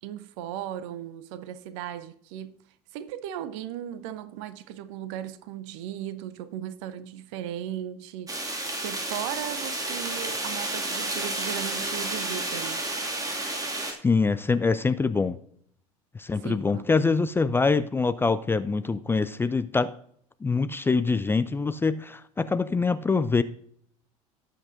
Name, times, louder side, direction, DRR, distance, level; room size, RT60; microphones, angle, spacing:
voice 1, 0.0-2.6 2.9-12.8 16.4-16.9, right 11 dB, 55° right, 0.9 m, -37 dB
sound 1, 8.3-13.9, right 2 dB, 20° right, 2.2 m, -31 dB
voice 2, 14.0-15.4 16.1-19.9 20.4-23.4, left 4 dB, 10° left, 0.4 m, -24 dB
18.0 x 7.7 x 2.6 m
figure-of-eight pair, 70°, 19 cm